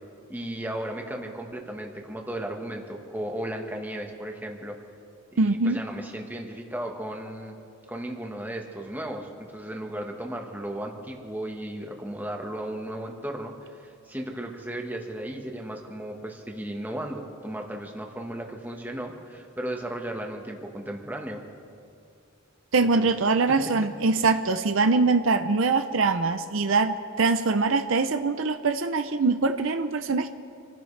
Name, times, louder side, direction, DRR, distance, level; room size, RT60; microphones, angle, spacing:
voice 1, 0.3-4.8 5.3-7.6 7.9-21.4 22.9-23.1 23.4-23.6, right 1 dB, 10° right, 2 dB, 1.3 m, -35 dB
voice 2, 5.4-5.8 22.7-30.3, right 3 dB, 65° right, 9 dB, 0.6 m, -23 dB
27.5 x 15.5 x 3.3 m, 2.5 s
head